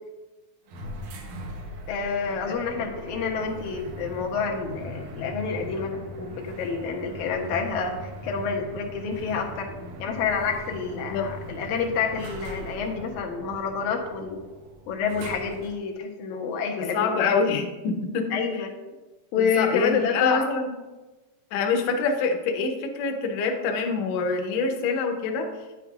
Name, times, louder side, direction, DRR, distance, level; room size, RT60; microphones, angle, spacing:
sound 1, 0.7-15.9, right 1 dB, 80° right, 2.3 m, -40 dB
voice 1, 1.9-9.7 10.0-14.4 14.9-17.4 18.3-18.7 19.3-20.5, left 5 dB, 90° left, 1 dB, 2.3 m, -28 dB
voice 2, 16.8-18.3 18.6-18.7 19.4-20.7 21.5-25.5, left 4 dB, 70° left, 4 dB, 1.7 m, -26 dB
9.2 x 7.3 x 2.3 m, 1.2 s
omnidirectional pair, 3.3 m